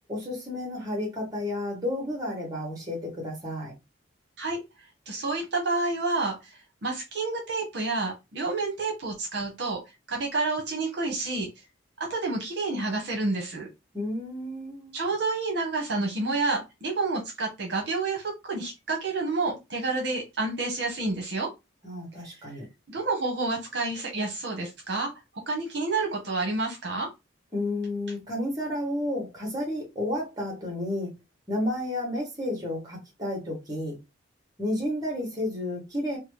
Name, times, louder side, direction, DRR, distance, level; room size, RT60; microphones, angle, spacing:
voice 1, 0.1-3.7 13.9-14.9 21.8-22.7 27.5-31.1 31.5-34.0 34.6-36.2, left 1 dB, 20° right, 1.3 m, -31 dB
voice 2, 5.1-6.5 6.8-9.8 10.1-11.5 12.0-13.7 14.9-21.5 22.9-25.1 25.5-27.1, right 3 dB, 60° right, 0.8 m, -29 dB
2.9 x 2.2 x 3.1 m
head